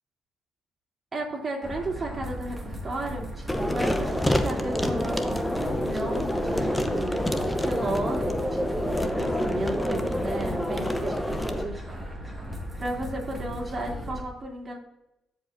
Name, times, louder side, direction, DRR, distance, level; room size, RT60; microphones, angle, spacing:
voice 1, 1.1-3.3 3.6-7.2 7.6-12.0 12.8-14.8, right 2 dB, 35° right, -1 dB, 2.6 m, -34 dB
sound 1, 1.6-14.2, equal, 10° right, 1.9 m, -37 dB
sound 2, 3.5-11.6, left 1 dB, 10° left, 0.8 m, -27 dB
14.0 x 5.0 x 2.6 m, 0.87 s
cardioid pair, 90°, 0 cm